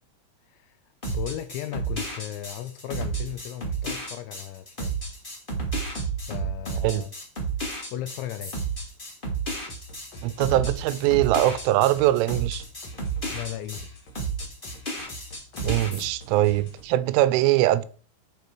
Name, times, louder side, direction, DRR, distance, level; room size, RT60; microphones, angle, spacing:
voice 1, 0.5-0.8 1.1-5.0 6.3-7.1 7.9-8.6 13.3-13.9, left 13 dB, 85° left, 2.7 m, -36 dB
sound 1, 1.0-13.9 14.1-16.0, right 4 dB, 20° left, 1.2 m, -31 dB
sound 2, 9.7-17.1, right 1 dB, 55° left, 1.3 m, -45 dB
voice 2, 10.2-12.6 15.6-17.9, right 15 dB, 85° right, 3.1 m, -22 dB
12.0 x 4.9 x 4.6 m
omnidirectional pair, 5.7 m